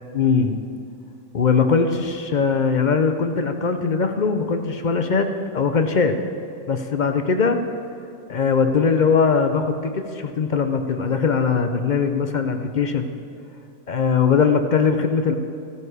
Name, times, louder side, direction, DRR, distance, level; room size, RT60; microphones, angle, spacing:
voice 1, 0.1-0.6 1.3-5.3 5.5-6.2 6.7-7.6 8.3-13.1 13.9-15.3, left 5 dB, 45° left, 7 dB, 0.6 m, -20 dB
15.0 x 9.2 x 5.0 m, 2.5 s
omnidirectional pair, 1.4 m